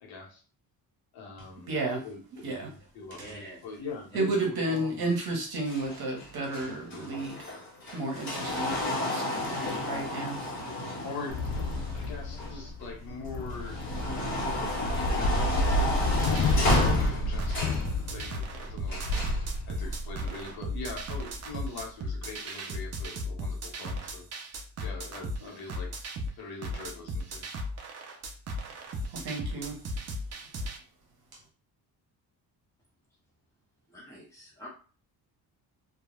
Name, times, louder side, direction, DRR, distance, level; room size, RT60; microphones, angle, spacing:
voice 1, 0.0-0.4 1.1-1.7 2.0-5.1 6.6-7.1 11.0-13.8 14.6-19.0 19.7-24.3 24.8-26.1 26.4-27.5, left 4 dB, 65° left, 0 dB, 0.9 m, -43 dB
voice 2, 1.7-2.0 2.4-2.7 4.1-7.4 7.9-10.4 29.1-29.8, right 2 dB, 65° right, 1 dB, 1.0 m, -32 dB
voice 3, 3.1-3.9 33.9-34.7, equal, 5° left, -5 dB, 1.1 m, -47 dB
sound 1, 5.7-12.9 13.3-17.9 18.9-19.4 20.3-20.4, left 1 dB, 30° left, 1.0 m, -32 dB
sound 2, 11.3-21.5, left 1 dB, 50° left, 0.4 m, -30 dB
sound 3, 16.0-30.8, equal, 40° right, 0.5 m, -36 dB
2.2 x 2.2 x 3.0 m, 0.38 s
cardioid pair, 160°, 39 cm